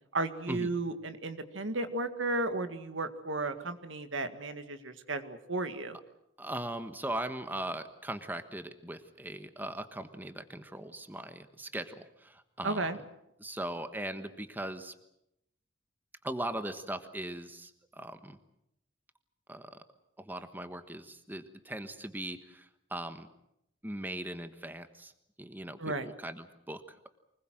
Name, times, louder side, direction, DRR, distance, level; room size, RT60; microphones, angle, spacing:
voice 1, 0.1-6.0 12.6-13.0 25.8-26.1, right 2 dB, 80° right, 9 dB, 2.0 m, -34 dB
voice 2, 6.4-12.9 13.4-14.9 16.2-18.4 19.5-19.8 20.2-23.3 23.8-25.1 25.4-27.1, right 1 dB, 10° right, 9 dB, 1.3 m, -39 dB
24.5 x 20.5 x 7.7 m, 0.80 s
head